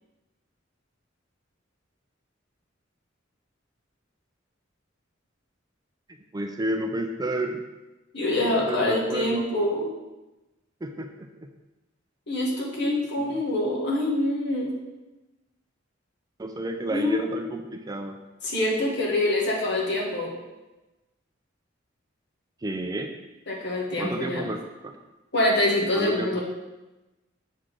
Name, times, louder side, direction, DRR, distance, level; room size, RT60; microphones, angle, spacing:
voice 1, 6.3-7.6 8.4-9.5 10.8-11.3 13.2-13.3 16.4-18.2 22.6-23.1 24.0-25.0 26.0-26.4, right 1 dB, 20° right, 5 dB, 0.4 m, -31 dB
voice 2, 8.1-9.9 12.3-14.8 16.9-17.3 18.4-20.3 23.5-24.5 25.3-26.4, left 1 dB, 60° left, -3 dB, 1.7 m, -25 dB
7.4 x 4.0 x 4.9 m, 1.1 s
head